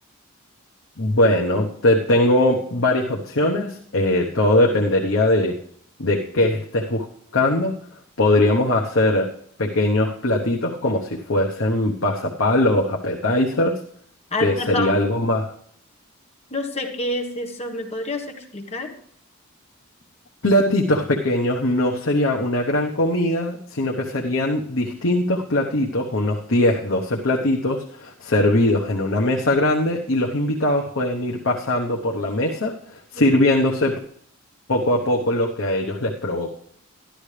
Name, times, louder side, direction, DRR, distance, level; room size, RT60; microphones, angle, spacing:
voice 1, 1.0-5.6 6.0-7.1 7.3-7.8 8.2-9.3 9.6-13.8 14.4-15.5 20.4-34.0 34.7-36.5, left 1 dB, 65° left, -1 dB, 1.1 m, -21 dB
voice 2, 14.3-15.0 16.5-19.0 33.1-33.3, left 2 dB, 30° left, 2 dB, 1.5 m, -28 dB
13.5 x 11.5 x 3.4 m, 0.65 s
head